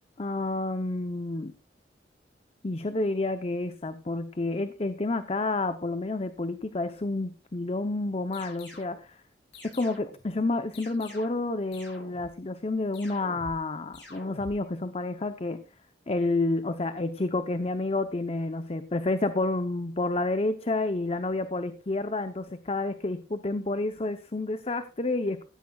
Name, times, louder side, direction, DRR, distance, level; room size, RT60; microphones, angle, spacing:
voice 1, 0.2-1.5 2.6-9.2 9.7-15.6 16.1-25.4, left 2 dB, 35° left, 10 dB, 0.7 m, -29 dB
sound 1, 8.3-9.0 9.5-10.3 10.7-11.5 11.7-12.4 12.9-13.6 13.9-14.6, left 2 dB, 80° left, 8.0 m, -47 dB
16.0 x 13.0 x 2.3 m, 0.32 s
head